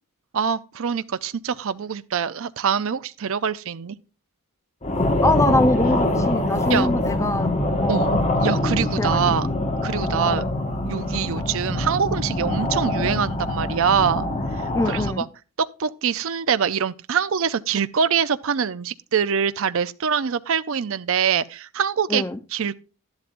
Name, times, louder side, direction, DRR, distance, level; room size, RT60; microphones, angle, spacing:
voice 1, 0.3-4.0 6.7-6.9 7.9-9.5 9.8-10.5 10.9-15.3 15.6-22.2 22.5-22.8, right 7 dB, 60° right, 0.5 m, -24 dB
sound 1, 4.8-15.1, left 1 dB, 30° left, 1.5 m, -24 dB
voice 2, 5.2-7.5 7.8-8.0 9.0-9.4 10.3-10.5 14.7-15.2 22.1-22.4, left 1 dB, 15° left, 0.6 m, -23 dB
12.5 x 11.5 x 2.5 m
head